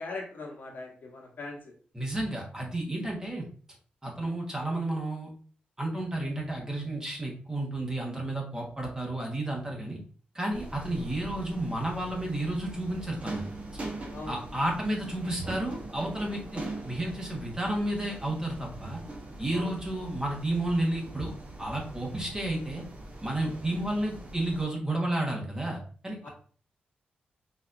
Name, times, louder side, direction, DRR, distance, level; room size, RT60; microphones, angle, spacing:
voice 1, 0.0-1.7 14.1-14.4 19.5-19.7 26.2-26.3, left 3 dB, 65° left, 0 dB, 1.1 m, -40 dB
voice 2, 1.9-3.5 4.0-5.3 5.8-10.0 10.3-13.4 14.3-19.0 19.4-22.8 23.2-26.3, right 1 dB, 20° right, -1 dB, 1.3 m, -32 dB
sound 1, 10.5-24.7, right 2 dB, 40° right, 1.0 m, -42 dB
4.0 x 2.7 x 2.5 m, 0.43 s
cardioid pair, 65°, 3 cm